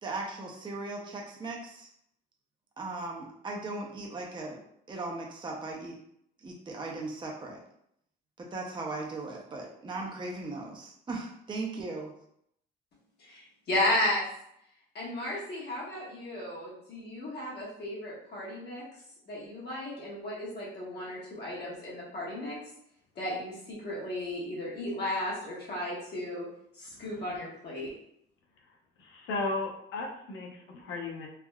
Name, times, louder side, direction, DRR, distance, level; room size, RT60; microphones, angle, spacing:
voice 1, 0.0-1.9 2.8-4.6 4.9-6.0 6.4-7.6 8.4-12.1, right 3 dB, 25° right, -1 dB, 0.6 m, -38 dB
voice 2, 13.2-14.3 14.9-18.8 19.3-22.6 23.1-26.5 26.8-27.9, left 1 dB, 60° left, -6 dB, 1.2 m, -34 dB
voice 3, 29.0-31.3, left 3 dB, 85° left, 1 dB, 0.7 m, -35 dB
3.4 x 2.2 x 2.2 m, 0.72 s
cardioid pair, 90°, 20 cm